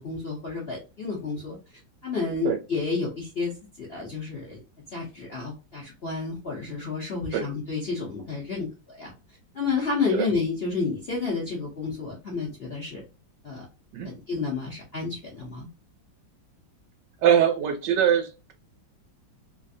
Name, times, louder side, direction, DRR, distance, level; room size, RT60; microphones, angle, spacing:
voice 1, 0.0-1.6 2.0-3.5 3.8-4.6 4.9-9.1 9.5-13.0 13.4-13.7 14.3-15.7, left 4 dB, 55° left, -4 dB, 0.6 m, -30 dB
voice 2, 17.2-18.5, right 9 dB, 70° right, 5 dB, 1.2 m, -22 dB
3.2 x 2.5 x 2.6 m, 0.30 s
omnidirectional pair, 2.1 m